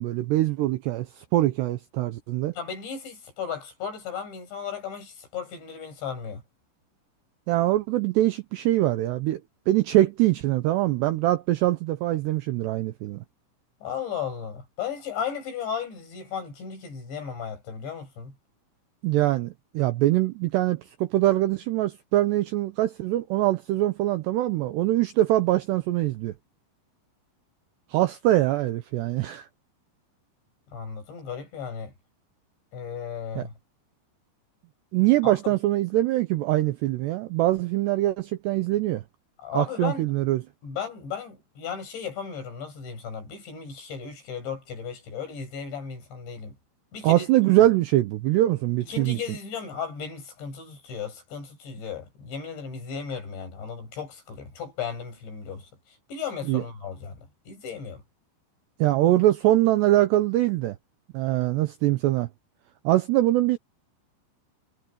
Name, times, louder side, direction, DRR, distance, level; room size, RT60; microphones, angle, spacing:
voice 1, 0.0-2.5 7.5-9.4 9.7-13.2 19.0-26.3 27.9-29.5 33.4-33.5 34.9-39.0 39.5-40.4 47.0-49.2 56.5-56.6 58.8-60.8 61.1-62.3 62.8-63.6, right 15 dB, 80° right, 2.5 m, -23 dB
voice 2, 2.5-6.4 13.8-18.3 30.7-31.9 32.7-33.5 35.2-35.5 39.4-40.1 40.6-46.6 46.9-47.5 48.8-58.0, left 6 dB, 60° left, 9.7 m, -35 dB
omnidirectional pair, 5.8 m